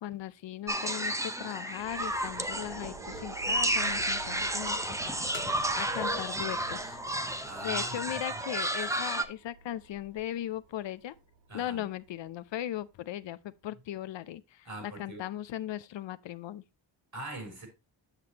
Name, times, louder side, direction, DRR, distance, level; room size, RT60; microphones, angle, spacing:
voice 1, 0.0-5.2 5.8-7.0 7.6-11.2 11.5-16.6, left 12 dB, 75° left, 0.6 m, -38 dB
sound 1, 0.7-9.3, right 1 dB, 5° right, 0.6 m, -32 dB
sound 2, 1.8-12.9, right 3 dB, 75° right, 0.8 m, -50 dB
sound 3, 4.4-7.6 7.9-8.0 8.8-8.9 9.3-9.4 9.6-10.2, left 5 dB, 25° left, 0.8 m, -47 dB
voice 2, 7.2-8.3 11.5-11.9 14.6-15.2 17.1-17.7, right 1 dB, 55° right, 3.7 m, -42 dB
8.1 x 6.8 x 2.8 m
cardioid pair, 80°, 45 cm